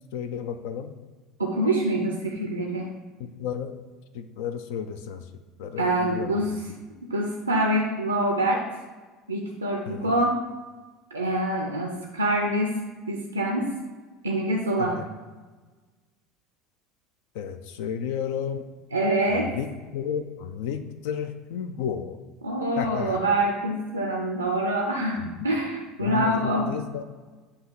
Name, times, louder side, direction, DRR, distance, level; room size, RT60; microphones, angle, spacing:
voice 1, 0.1-0.9 3.2-3.7 4.1-5.3 5.6-6.6 9.9-10.1 14.8-15.0 17.3-18.6 19.3-22.2 22.8-23.2 26.0-27.0, left 8 dB, 60° left, 10 dB, 0.3 m, -32 dB
voice 2, 1.4-2.9 5.8-6.5 7.1-8.6 9.3-10.4 11.1-12.7 13.1-13.7 14.2-15.0 18.9-19.5 22.4-26.7, right 1 dB, 85° right, 1 dB, 0.4 m, -25 dB
7.4 x 2.8 x 4.5 m, 1.3 s
figure-of-eight pair, 70°, 0 cm